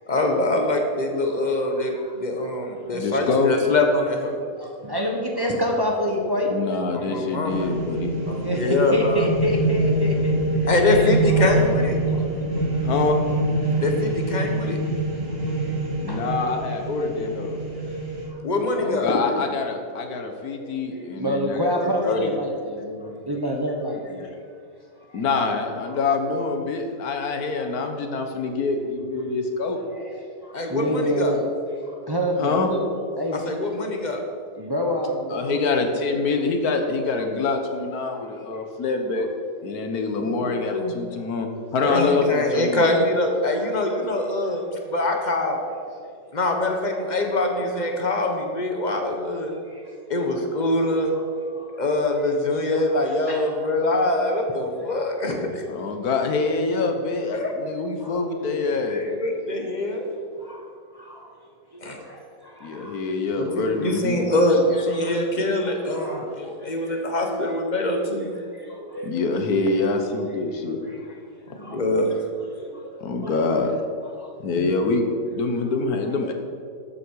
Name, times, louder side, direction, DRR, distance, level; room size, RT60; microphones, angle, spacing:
voice 1, 0.1-4.4 6.9-7.7 8.3-9.3 10.6-12.0 13.8-14.8 18.4-19.1 30.5-31.4 33.4-34.2 40.2-40.9 41.8-44.6 44.9-45.6 46.3-49.5 50.1-51.1 51.7-55.7 57.3-57.5 58.9-60.1 61.8-62.0 63.3-68.3 71.7-72.1, left 2 dB, 30° left, 3 dB, 1.4 m, -24 dB
voice 2, 1.2-2.2 2.9-3.0 4.5-6.6 8.4-10.7 11.3-11.6 12.0-12.5 16.1-16.2 17.8-18.0 18.3-18.4 20.1-24.3 25.0-25.2 27.2-28.2 29.6-32.9 33.2-33.6 34.6-36.2 38.1-38.2 40.7-41.6 43.9-44.0 44.4-44.6 45.5-46.0 46.9-47.5 48.9-49.0 49.6-49.9 50.5-50.6 51.0-51.9 52.7-53.6 53.9-54.0 58.0-58.5 59.1-59.2 59.6-61.3 61.7-63.0 63.3-63.6 64.2-64.3 64.8-67.1 68.4-69.6 70.5-71.2 71.6-71.8 72.4-73.5 74.1-74.3 76.0-76.3, equal, 15° right, 0 dB, 1.1 m, -30 dB
voice 3, 2.9-3.6 6.5-8.1 12.8-13.2 16.0-17.7 18.8-21.7 22.0-22.3 25.1-29.8 32.4-32.7 35.3-39.3 39.6-42.9 55.7-59.0 62.6-64.3 69.0-70.8 73.0-73.7 74.4-76.3, left 3 dB, 90° left, 5 dB, 1.6 m, -25 dB
sound 1, 7.5-18.3, right 1 dB, 45° right, 2.4 m, -25 dB
13.0 x 8.5 x 4.8 m, 2.3 s
omnidirectional pair, 1.5 m